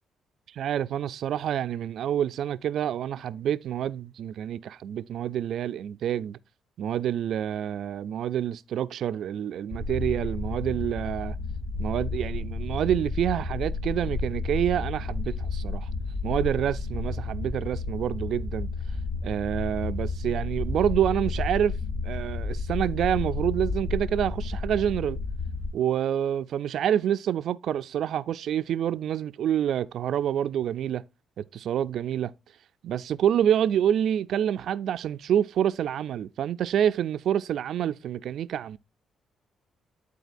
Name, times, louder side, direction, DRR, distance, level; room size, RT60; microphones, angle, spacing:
voice 1, 0.5-6.4 6.8-11.4 11.8-15.9 16.2-18.7 19.2-21.8 22.0-25.2 25.7-31.0 31.4-32.3 32.8-38.8, right 10 dB, 70° right, 0.3 m, -27 dB
sound 1, 9.7-25.7, left 3 dB, 75° left, 1.5 m, -31 dB
11.0 x 4.0 x 2.5 m
cardioid pair, 90°, 0 cm